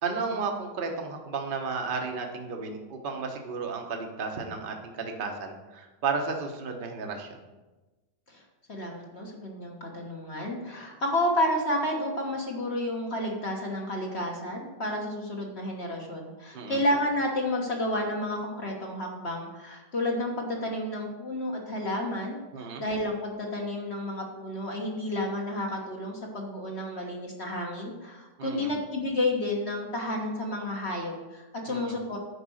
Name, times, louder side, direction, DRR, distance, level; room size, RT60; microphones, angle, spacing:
voice 1, 0.0-7.3 16.5-16.8 22.5-22.8 28.4-28.7 31.7-32.0, right 4 dB, 35° right, 3 dB, 1.1 m, -33 dB
voice 2, 8.7-22.4 22.8-32.2, left 1 dB, 40° left, 0 dB, 1.5 m, -31 dB
9.9 x 5.1 x 6.4 m, 1.2 s
omnidirectional pair, 1.8 m